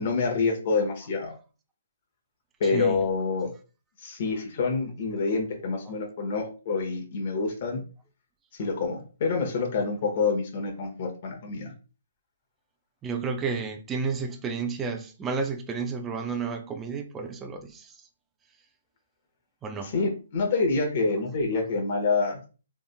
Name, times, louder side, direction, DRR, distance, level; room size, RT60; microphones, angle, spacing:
voice 1, 0.0-1.3 2.6-3.5 4.0-7.8 8.6-11.7 19.8-22.4, left 4 dB, 50° left, 1.4 m, -27 dB
voice 2, 2.6-3.0 5.9-6.0 13.0-18.0 19.6-20.0, right 5 dB, 15° right, 0.6 m, -31 dB
3.9 x 3.5 x 2.3 m
hypercardioid pair, 140°, 0 cm